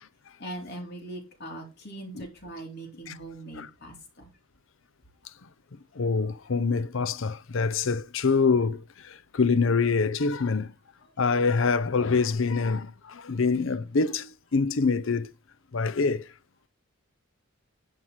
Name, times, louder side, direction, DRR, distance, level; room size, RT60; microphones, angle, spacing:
voice 1, 0.4-4.3, right 1 dB, 50° left, 2.9 m, -41 dB
voice 2, 5.9-10.7 11.2-15.3 15.7-16.3, left 4 dB, 65° left, 0.6 m, -25 dB
11.0 x 4.7 x 4.9 m
head